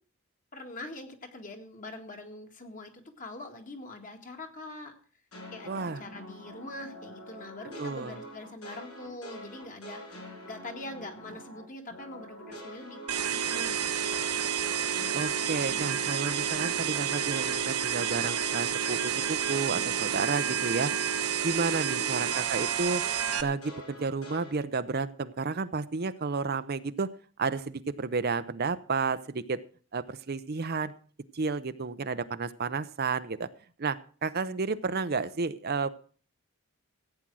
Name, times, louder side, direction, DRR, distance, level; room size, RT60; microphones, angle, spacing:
voice 1, 0.5-4.9 5.5-14.3 21.9-22.3, left 2 dB, 35° left, 4 dB, 1.9 m, -44 dB
sound 1, 5.3-11.6 11.9-21.2 21.5-24.5, equal, 85° left, 6.7 m, -45 dB
voice 2, 5.7-6.0 7.8-8.2 15.1-20.9 21.4-23.0 23.4-27.1 27.4-29.6 29.9-30.9 31.3-33.5 33.8-35.9, right 4 dB, 45° right, 12 dB, 0.6 m, -31 dB
sound 2, 13.1-23.4, right 8 dB, 85° right, 1.1 m, -30 dB
15.0 x 9.0 x 6.1 m, 0.42 s
head